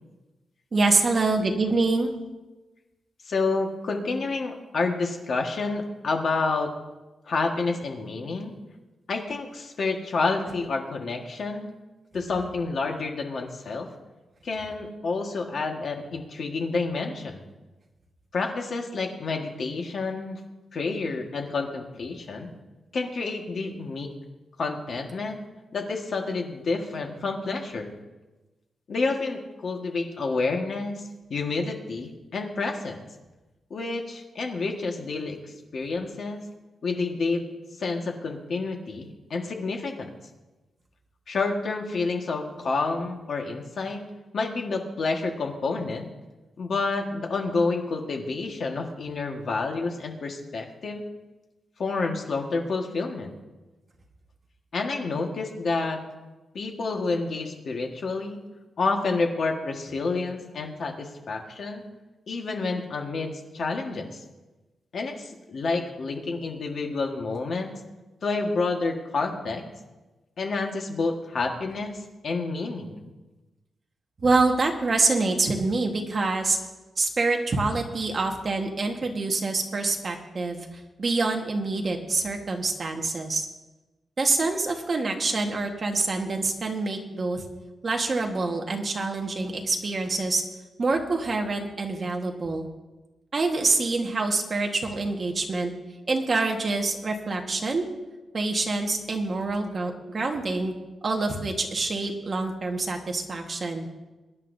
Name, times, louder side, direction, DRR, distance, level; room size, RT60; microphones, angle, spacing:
voice 1, 0.7-2.1 74.2-76.6 77.0-80.7 81.0-83.5 84.2-87.4 87.8-90.4 90.8-92.7 93.3-95.7 96.1-97.8 98.3-100.7 101.0-103.9, right 3 dB, 35° right, 2 dB, 1.4 m, -26 dB
voice 2, 3.3-6.7 7.3-8.5 9.1-11.7 12.1-13.9 14.4-17.4 18.3-20.4 20.7-22.5 22.9-24.1 24.6-25.4 25.7-27.9 28.9-31.0 31.3-33.0 33.7-35.4 35.7-36.4 36.8-37.4 37.8-40.1 41.3-44.0 44.3-46.1 46.6-51.0 51.8-53.3 54.7-56.0 56.5-58.4 58.8-61.8 62.3-64.2 64.9-67.7 68.2-69.6 70.4-72.0 72.2-73.0, left 3 dB, 50° left, 2 dB, 1.6 m, -29 dB
23.0 x 10.5 x 2.7 m, 1.1 s
wide cardioid pair, 175°, 0 cm